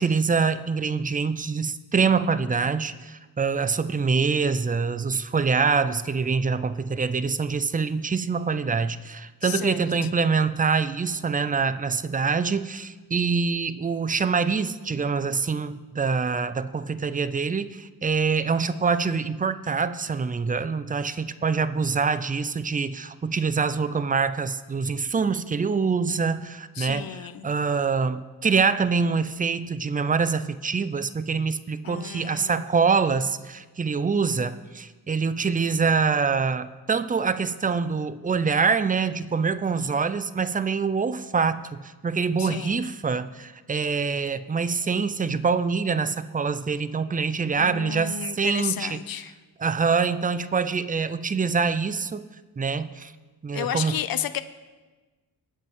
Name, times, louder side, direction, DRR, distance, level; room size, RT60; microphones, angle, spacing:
voice 1, 0.0-49.0 49.6-52.2 52.6-53.1 53.4-53.9, right 5 dB, 25° right, 13 dB, 0.4 m, -25 dB
voice 2, 9.4-9.8 26.8-27.5 31.8-32.7 42.4-42.8 47.6-49.3 53.5-54.4, left 10 dB, 65° left, 12 dB, 0.6 m, -32 dB
20.5 x 8.4 x 3.6 m, 1.3 s
wide cardioid pair, 170°, 38 cm